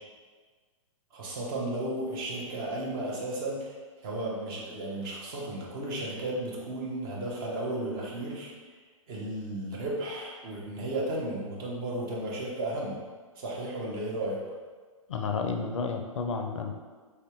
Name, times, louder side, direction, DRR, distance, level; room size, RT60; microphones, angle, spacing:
voice 1, 1.1-3.8 4.0-8.5 9.1-13.0 13.4-14.4, right 1 dB, 40° right, -3 dB, 1.0 m, -34 dB
voice 2, 15.1-16.7, left 5 dB, 65° left, 4 dB, 0.4 m, -31 dB
3.3 x 2.8 x 3.6 m, 1.5 s
figure-of-eight pair, 110°, 17 cm